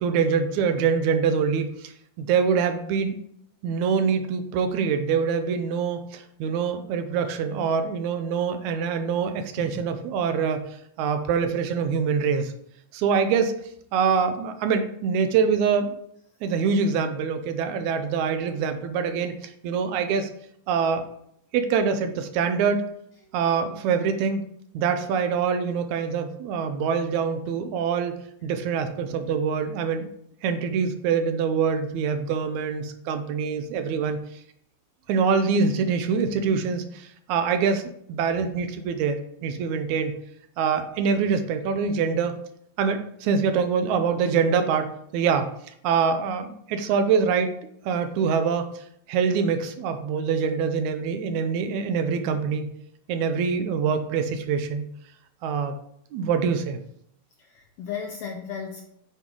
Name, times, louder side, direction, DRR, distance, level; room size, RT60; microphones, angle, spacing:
voice 1, 0.0-3.2 3.6-10.7 11.0-12.5 12.9-13.5 13.9-16.0 16.4-20.3 20.7-21.1 21.5-22.8 23.3-24.4 24.7-28.2 28.4-30.1 30.4-34.2 35.1-37.8 38.1-40.2 40.6-42.3 42.8-45.5 45.8-47.5 47.8-52.7 53.1-54.9 55.4-55.8 56.1-56.8, right 6 dB, 80° right, 8 dB, 2.0 m, -24 dB
voice 2, 57.5-58.8, left 7 dB, 75° left, 2 dB, 1.4 m, -35 dB
8.1 x 4.6 x 3.7 m, 0.70 s
omnidirectional pair, 3.4 m